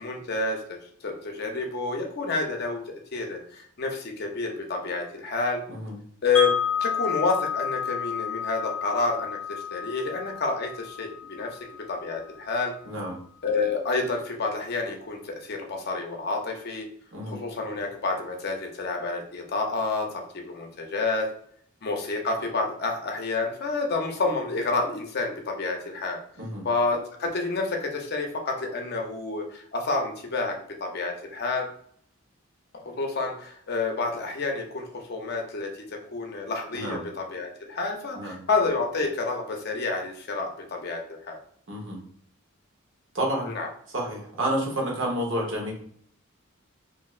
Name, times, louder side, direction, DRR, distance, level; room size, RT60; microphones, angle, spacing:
voice 1, 0.0-5.6 6.2-6.5 6.8-11.6 11.9-12.7 13.4-16.9 17.3-21.3 21.8-26.2 26.6-30.5 30.8-31.7 32.7-35.7 36.1-41.4 43.4-43.7, left 3 dB, 50° left, 2 dB, 0.6 m, -29 dB
Wind chime, 6.3-12.3, left 6 dB, 5° left, 0.6 m, -31 dB
voice 2, 12.9-13.2 17.1-17.4 26.4-26.7 36.7-37.1 38.1-38.4 41.7-42.0 43.1-43.5 43.9-45.7, right 1 dB, 65° right, -1 dB, 0.9 m, -29 dB
3.1 x 2.5 x 2.4 m, 0.62 s
head